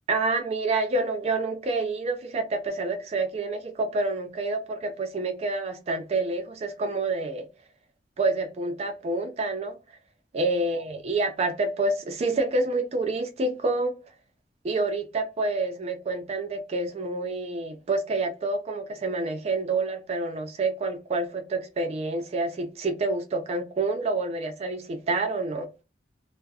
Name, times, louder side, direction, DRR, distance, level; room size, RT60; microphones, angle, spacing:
voice 1, 0.1-7.5 8.2-9.7 10.3-14.0 14.6-25.7, right 3 dB, 35° right, 0.3 m, -28 dB
2.3 x 2.1 x 2.6 m
head